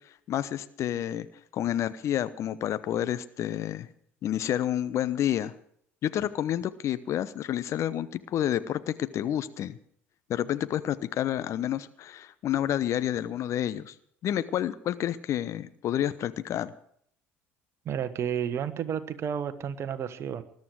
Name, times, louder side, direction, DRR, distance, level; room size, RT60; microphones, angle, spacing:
voice 1, 0.3-1.3 1.5-3.9 4.2-5.5 6.0-9.8 10.3-13.9 14.2-16.7, left 11 dB, 45° left, 13 dB, 0.9 m, -29 dB
voice 2, 17.8-20.4, right 8 dB, 40° right, 12 dB, 1.4 m, -31 dB
21.0 x 12.0 x 4.9 m, 0.65 s
figure-of-eight pair, 60°, 7 cm